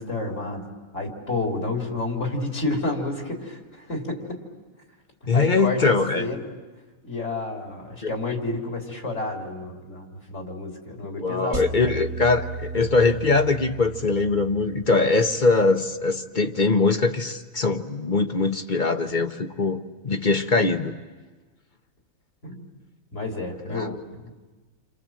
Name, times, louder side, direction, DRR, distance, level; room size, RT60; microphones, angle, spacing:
voice 1, 0.0-4.4 5.2-6.5 7.0-11.9 22.4-22.7 23.1-24.0 24.2-24.3, left 2 dB, 60° left, 1 dB, 3.9 m, -30 dB
voice 2, 5.3-6.3 8.0-8.1 11.0-20.9 23.7-24.0, left 3 dB, 35° left, 6 dB, 1.1 m, -22 dB
sound 1, 11.5-15.9, right 4 dB, 75° right, 2.2 m, -36 dB
29.5 x 26.0 x 7.6 m, 1.3 s
omnidirectional pair, 1.5 m